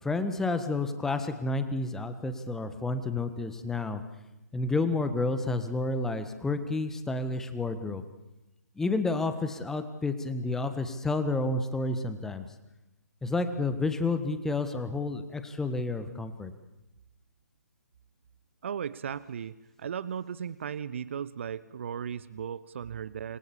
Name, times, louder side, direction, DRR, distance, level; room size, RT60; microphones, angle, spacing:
voice 1, 0.0-4.0 4.5-8.0 8.7-12.4 13.2-16.5, left 3 dB, 5° left, 10 dB, 1.5 m, -30 dB
voice 2, 18.6-23.4, right 8 dB, 45° right, 18 dB, 0.8 m, -36 dB
27.5 x 21.5 x 7.3 m, 0.97 s
figure-of-eight pair, 135°, 9 cm